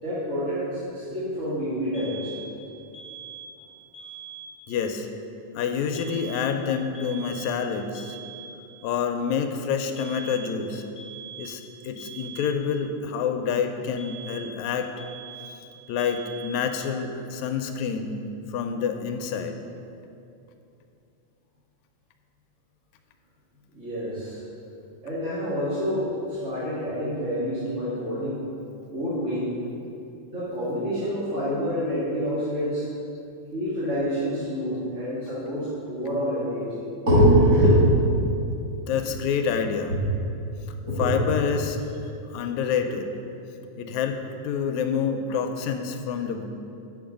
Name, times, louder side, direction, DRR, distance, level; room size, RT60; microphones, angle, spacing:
voice 1, 0.0-2.3 23.7-24.4 25.0-28.4 28.9-29.5 30.3-32.9 33.5-38.2 39.4-39.5 40.8-41.3, equal, 30° right, -11 dB, 1.6 m, -25 dB
sound 1, 1.9-2.6 2.9-3.6 3.9-4.6 5.9-6.6 6.9-7.6 7.9-8.6 10.0-10.6 11.0-11.6 12.0-12.6 14.0-14.6 15.0-15.6 16.0-16.6, right 6 dB, 30° left, 1.6 m, -42 dB
voice 2, 4.7-5.1 5.5-8.2 8.8-10.8 11.4-14.9 15.9-18.2 18.5-19.6 38.7-40.0 41.0-41.8 42.3-43.2 43.8-46.5, left 6 dB, 80° left, 6 dB, 1.9 m, -27 dB
9.1 x 6.1 x 5.1 m, 2.7 s
omnidirectional pair, 3.3 m